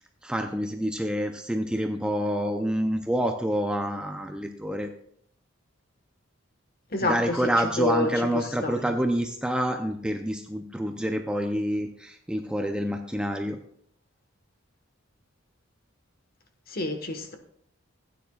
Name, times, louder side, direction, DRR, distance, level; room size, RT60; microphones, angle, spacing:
voice 1, 0.2-4.9 7.0-13.6, equal, 5° right, 0.5 m, -27 dB
voice 2, 6.9-8.9 16.7-17.3, left 2 dB, 45° left, 1.3 m, -29 dB
15.5 x 9.4 x 2.4 m
head